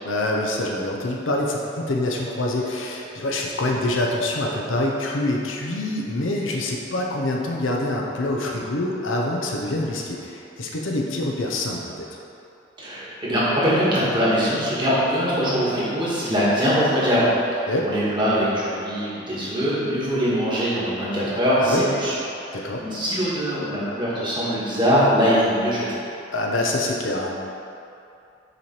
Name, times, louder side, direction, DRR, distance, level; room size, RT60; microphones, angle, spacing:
voice 1, 0.0-12.1 17.7-17.9 21.6-21.8 22.5-22.8 26.3-27.4, left 1 dB, 90° left, -1 dB, 0.7 m, -25 dB
voice 2, 12.8-22.1 22.4-25.9, equal, 25° right, -9 dB, 1.5 m, -22 dB
6.8 x 3.2 x 4.4 m, 2.7 s
head